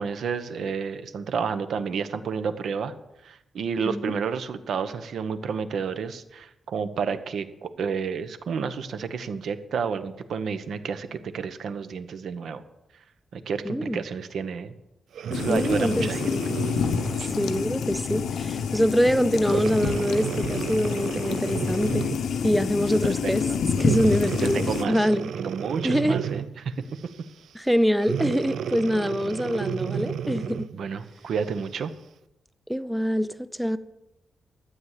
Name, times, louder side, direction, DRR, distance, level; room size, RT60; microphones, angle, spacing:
voice 1, 0.0-2.9 3.2-12.6 13.3-14.7 15.3-16.2 17.2-17.3 23.2-23.3 24.4-25.1 25.4-26.7 30.7-31.9, right 6 dB, 70° right, 0.9 m, -30 dB
voice 2, 13.6-14.0 15.5-16.6 17.4-22.1 22.4-23.5 23.8-25.3 25.8-26.2 27.5-30.7 32.7-33.8, equal, ahead, 0.5 m, -25 dB
Breathing, 15.1-17.8 18.4-18.6 19.4-22.3 23.8-26.6 28.0-30.7 31.4-31.5, right 8 dB, 90° right, 0.4 m, -32 dB
sound 1, 15.3-24.8, left 6 dB, 80° left, 0.8 m, -28 dB
12.5 x 8.1 x 7.4 m
wide cardioid pair, 160°, 0 cm